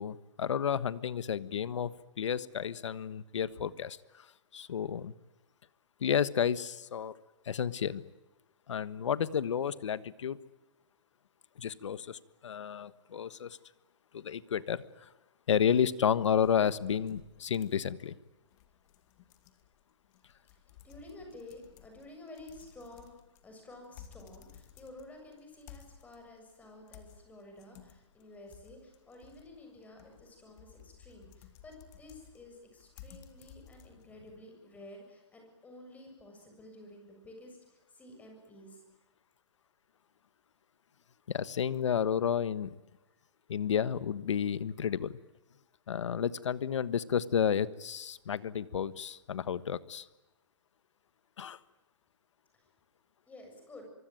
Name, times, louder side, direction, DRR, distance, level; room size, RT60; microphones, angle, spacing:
voice 1, 0.0-1.9 2.2-4.3 4.5-5.1 6.0-7.2 7.4-8.0 8.7-10.4 11.6-13.6 14.1-15.1 15.5-18.2 41.3-42.7 43.5-45.2 45.9-50.0 51.4-51.6, left 8 dB, 75° left, 16 dB, 1.4 m, -31 dB
sound 1, 16.4-34.3, left 9 dB, 35° left, 2.7 m, -57 dB
voice 2, 20.8-23.2 23.4-38.8 53.3-53.9, left 1 dB, 10° left, 3 dB, 7.3 m, -51 dB
24.5 x 24.0 x 9.2 m, 1.1 s
hypercardioid pair, 150°, 15 cm